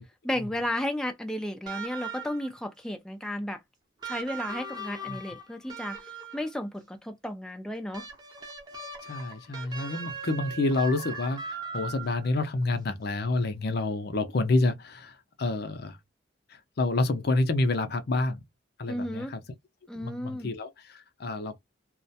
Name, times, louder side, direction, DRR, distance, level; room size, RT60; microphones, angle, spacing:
voice 1, 0.2-3.6 4.0-8.1 18.9-19.3 19.9-20.5, left 1 dB, 5° left, 0.3 m, -33 dB
sound 1, 1.7-2.6 4.0-6.6 7.9-12.4 13.7-13.8, right 4 dB, 20° right, 0.7 m, -39 dB
voice 2, 9.0-16.0 16.8-18.4 18.8-19.4 19.9-21.6, left 2 dB, 55° left, 0.5 m, -28 dB
2.4 x 2.1 x 2.6 m
head